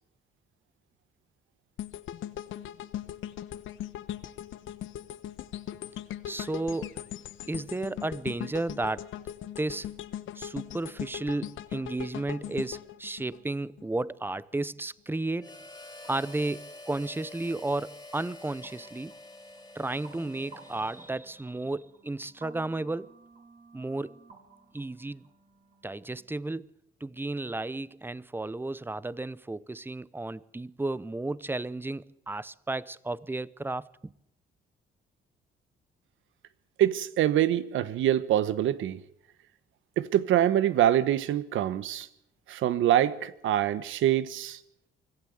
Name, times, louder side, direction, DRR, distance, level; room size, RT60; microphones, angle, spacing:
sound 1, 1.8-14.0 14.4-14.5, left 11 dB, 80° left, 1.1 m, -39 dB
voice 1, 6.3-7.0 7.5-9.1 9.6-9.9 10.3-15.6 16.0-19.1 19.7-23.1 23.7-24.2 24.7-25.3 25.8-34.1, right 2 dB, 10° right, 0.7 m, -33 dB
Harmonica, 15.4-21.4, left 2 dB, 20° left, 3.0 m, -48 dB
sound 2, 18.6-26.2, right 3 dB, 40° right, 6.6 m, -55 dB
voice 2, 36.8-39.0 40.0-42.1 42.5-44.6, right 12 dB, 80° right, 1.2 m, -25 dB
24.5 x 15.0 x 8.1 m
cardioid pair, 90°, 20 cm